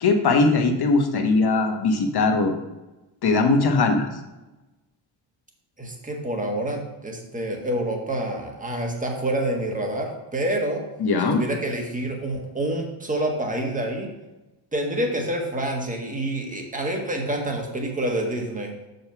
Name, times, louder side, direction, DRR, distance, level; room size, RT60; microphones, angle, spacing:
voice 1, 0.0-2.5 3.2-4.1 11.0-11.4, left 3 dB, 55° left, 5 dB, 1.3 m, -20 dB
voice 2, 5.8-10.8 11.2-14.1 14.7-18.7, right 1 dB, 15° right, 1 dB, 1.6 m, -27 dB
6.4 x 5.3 x 5.9 m, 1.0 s
cardioid pair, 115°, 47 cm